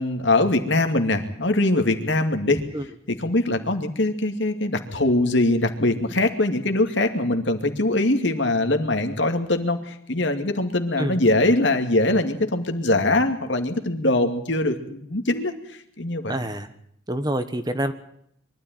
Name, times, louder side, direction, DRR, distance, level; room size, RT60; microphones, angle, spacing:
voice 1, 0.0-2.6 3.1-16.4, left 2 dB, 65° left, 6 dB, 2.5 m, -22 dB
voice 2, 16.3-16.7 17.1-17.9, right 1 dB, 20° right, 10 dB, 1.3 m, -26 dB
23.5 x 13.5 x 9.3 m, 0.70 s
head